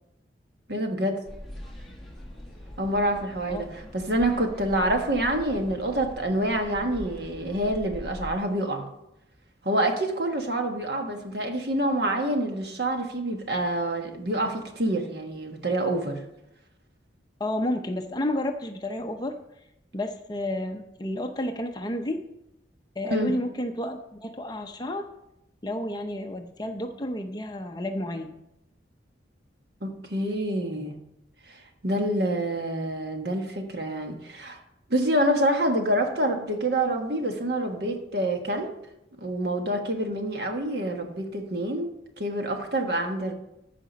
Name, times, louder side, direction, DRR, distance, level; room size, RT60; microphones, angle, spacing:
voice 1, 0.7-1.2 2.8-8.9 9.6-16.2 23.1-23.3 29.8-30.9 31.5-31.6 31.8-34.6 34.9-38.7 39.2-41.9 42.2-43.3, right 1 dB, 55° right, 4 dB, 1.4 m, -27 dB
sound 1, 1.2-8.3, equal, ahead, 1.7 m, -42 dB
voice 2, 17.4-19.4 19.9-22.2 23.0-25.1 25.6-28.4, left 1 dB, 20° left, 5 dB, 0.7 m, -31 dB
14.0 x 5.0 x 5.2 m, 0.84 s
head